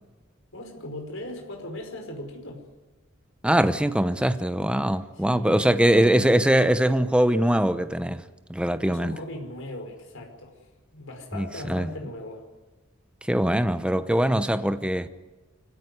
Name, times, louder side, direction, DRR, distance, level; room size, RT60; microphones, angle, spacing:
voice 1, 0.5-2.6 5.2-5.6 8.9-10.6 10.9-12.4, left 1 dB, 65° left, 5.1 m, -38 dB
voice 2, 3.4-8.2 8.5-9.1 11.4-11.9 13.3-15.1, right 1 dB, 5° right, 0.8 m, -22 dB
25.5 x 16.5 x 9.7 m
head